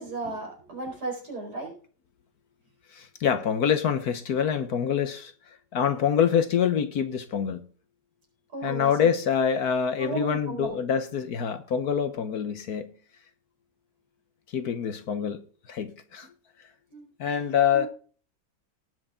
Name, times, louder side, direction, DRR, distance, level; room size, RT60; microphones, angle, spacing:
voice 1, 0.0-1.7 8.5-9.1 10.0-10.9 16.9-17.4 17.7-17.9, right 3 dB, 60° right, 5.3 m, -35 dB
voice 2, 2.9-5.3 5.7-7.7 8.6-12.9 14.5-15.4 15.7-16.3 17.2-17.9, left 7 dB, 60° left, 1.3 m, -25 dB
18.5 x 6.5 x 3.7 m
omnidirectional pair, 1.9 m